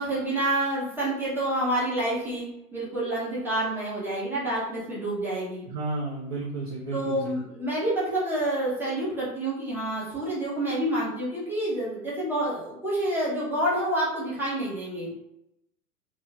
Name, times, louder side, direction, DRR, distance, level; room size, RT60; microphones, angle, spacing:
voice 1, 0.0-2.5 2.7-5.7 6.9-15.1, right 1 dB, 5° right, -8 dB, 0.9 m, -28 dB
voice 2, 5.6-7.3, right 2 dB, 25° right, -5 dB, 0.4 m, -32 dB
3.1 x 2.6 x 2.4 m, 0.86 s
figure-of-eight pair, 95°, 47 cm